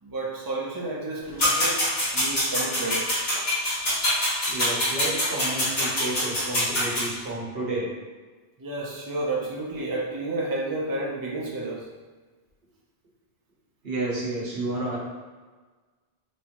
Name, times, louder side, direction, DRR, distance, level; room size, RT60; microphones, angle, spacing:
voice 1, 0.0-1.8 2.1-3.4 8.6-11.9, right 2 dB, 25° right, -4 dB, 0.6 m, -31 dB
sound 1, 1.4-7.1, left 1 dB, 75° left, 1.9 m, -25 dB
voice 2, 4.5-7.9 13.8-15.0, right 2 dB, 70° right, -5 dB, 1.4 m, -31 dB
4.3 x 3.3 x 2.9 m, 1.4 s
omnidirectional pair, 1.0 m